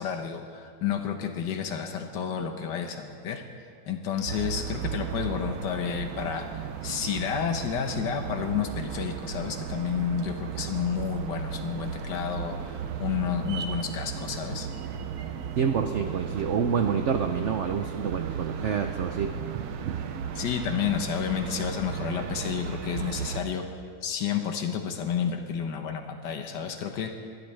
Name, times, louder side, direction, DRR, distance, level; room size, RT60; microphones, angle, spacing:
voice 1, 0.0-3.4 3.9-14.7 20.3-23.7 24.0-27.1, left 8 dB, 70° left, 5 dB, 1.6 m, -31 dB
sound 1, 4.3-23.4, right 7 dB, 65° right, 1.0 m, -35 dB
voice 2, 15.6-20.0, right 7 dB, 80° right, 6 dB, 0.6 m, -28 dB
21.5 x 11.5 x 3.3 m, 2.1 s
omnidirectional pair, 2.0 m